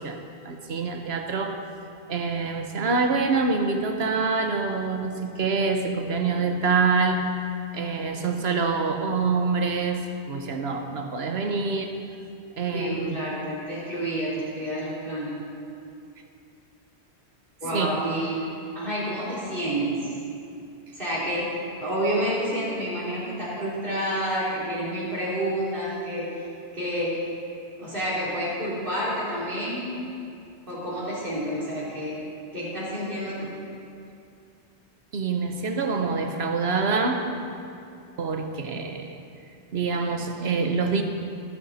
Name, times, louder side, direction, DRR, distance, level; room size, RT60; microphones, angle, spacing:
voice 1, 0.0-1.7 2.1-7.3 7.7-12.0 12.6-13.2 17.6-18.1 35.1-37.3 38.2-39.2 39.7-41.0, right 4 dB, 75° right, 5 dB, 1.2 m, -26 dB
voice 2, 12.7-15.4 17.6-18.4 18.7-20.1 20.9-21.5 21.8-26.3 26.7-27.1 27.8-29.9 30.7-32.2 32.5-33.5, equal, 55° right, -8 dB, 3.8 m, -29 dB
17.5 x 9.8 x 4.2 m, 2.5 s
omnidirectional pair, 1.1 m